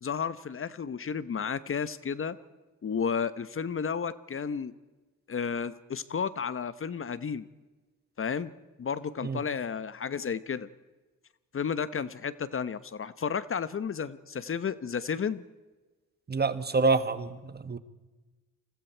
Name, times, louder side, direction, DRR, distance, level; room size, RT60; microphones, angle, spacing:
voice 1, 0.0-2.4 2.8-4.7 5.3-7.5 8.2-8.5 8.8-10.7 11.5-15.4, left 6 dB, 40° left, 16 dB, 1.0 m, -32 dB
voice 2, 16.3-17.8, right 3 dB, 30° right, 13 dB, 1.5 m, -27 dB
29.5 x 21.0 x 4.5 m, 1.2 s
cardioid pair, 80°, 33 cm